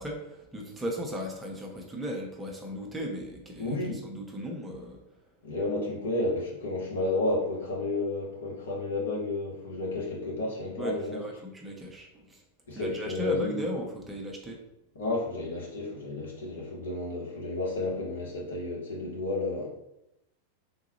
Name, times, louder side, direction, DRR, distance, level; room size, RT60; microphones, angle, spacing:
voice 1, 0.0-3.8 4.0-5.0 10.8-12.4 12.7-14.6, equal, 10° right, 0 dB, 0.6 m, -36 dB
voice 2, 3.6-4.0 5.4-11.2 12.7-13.6 14.9-19.7, left 2 dB, 65° left, -3 dB, 1.0 m, -31 dB
3.5 x 2.2 x 2.9 m, 0.83 s
figure-of-eight pair, 90°, 0 cm